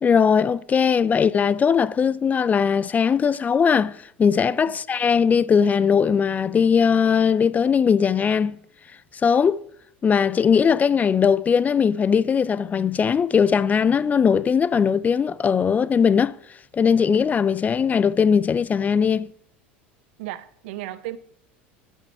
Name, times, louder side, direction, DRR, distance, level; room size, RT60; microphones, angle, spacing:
voice 1, 0.0-8.6 9.2-9.6 10.0-16.4 16.7-19.3, left 6 dB, 25° left, 0.3 m, -19 dB
voice 2, 20.2-21.2, right 15 dB, 70° right, 0.6 m, -34 dB
11.0 x 5.9 x 5.8 m
hypercardioid pair, 80°, 6 cm